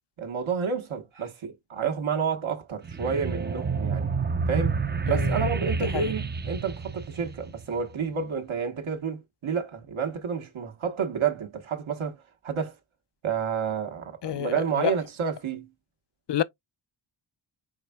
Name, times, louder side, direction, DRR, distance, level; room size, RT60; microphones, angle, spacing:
voice 1, 0.2-4.1 4.5-4.8 5.1-12.8 13.2-15.7, right 6 dB, 85° right, 1.2 m, -30 dB
sound 1, 2.8-7.8, right 5 dB, 25° right, 0.4 m, -29 dB
voice 2, 5.1-5.5 5.9-6.1 14.2-15.0 16.3-16.4, left 11 dB, 60° left, 0.5 m, -29 dB
4.8 x 4.4 x 2.2 m
wide cardioid pair, 90°, 47 cm